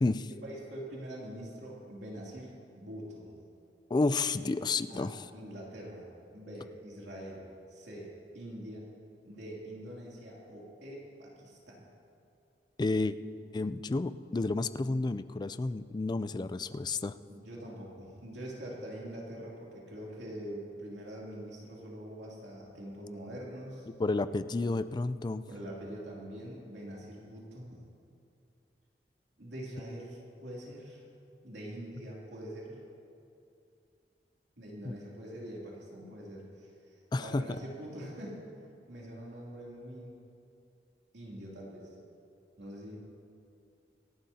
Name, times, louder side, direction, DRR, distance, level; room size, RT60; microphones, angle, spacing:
voice 1, 0.4-3.3 4.9-7.4 7.7-8.8 9.2-11.8 17.3-23.9 25.5-27.8 29.4-31.0 31.4-32.8 34.6-38.4 38.9-40.2 41.1-41.9 42.6-43.0, equal, 80° right, -4 dB, 2.8 m, -44 dB
voice 2, 3.9-5.2 12.8-13.2 13.5-17.2 24.0-25.4 34.8-34.9 37.1-37.4, left 3 dB, 25° left, 13 dB, 0.3 m, -31 dB
26.5 x 11.5 x 2.8 m, 2.6 s
head